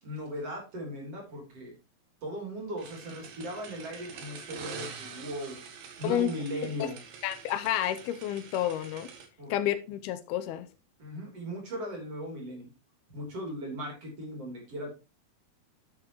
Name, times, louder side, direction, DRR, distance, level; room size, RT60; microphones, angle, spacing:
voice 1, 0.0-1.7 2.2-7.0 9.4-9.5 11.0-12.7 13.1-14.9, equal, 40° right, 4.1 m, -38 dB
sound 1, 2.8-9.3, right 6 dB, 75° right, 3.5 m, -46 dB
voice 2, 7.2-9.1 9.5-10.7, left 11 dB, 85° left, 2.7 m, -30 dB
10.5 x 8.5 x 3.0 m
omnidirectional pair, 4.4 m